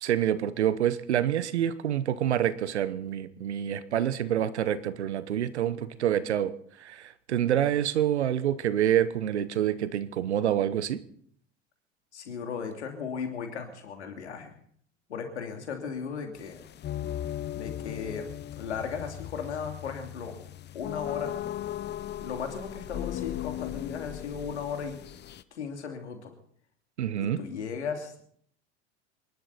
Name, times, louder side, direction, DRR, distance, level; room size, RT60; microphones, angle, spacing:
voice 1, 0.0-6.5 6.8-11.0 27.0-27.4, right 10 dB, 85° right, 15 dB, 1.0 m, -27 dB
voice 2, 12.1-14.6 15.1-16.6 17.5-18.3 18.6-20.3 20.7-21.3 22.2-25.0 25.5-26.3 27.2-28.2, left 6 dB, 90° left, 4 dB, 2.9 m, -36 dB
sound 1, 16.4-25.4, left 12 dB, 30° left, 0.7 m, -37 dB
27.5 x 12.0 x 4.1 m, 0.63 s
hypercardioid pair, 80°, 33 cm